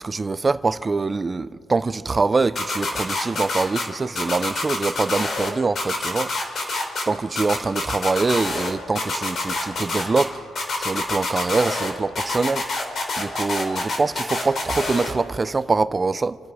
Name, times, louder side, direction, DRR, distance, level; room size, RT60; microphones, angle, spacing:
voice 1, 0.0-6.7 7.1-10.3 10.8-12.6 13.2-16.4, right 3 dB, 25° right, 0.5 m, -24 dB
sound 1, 2.6-3.8 4.2-5.5 5.8-7.0 7.4-8.7 9.0-10.2 10.6-11.9 12.2-15.1, left 3 dB, 50° left, 3.1 m, -26 dB
29.0 x 10.0 x 4.8 m
cardioid pair, 90°, 0 cm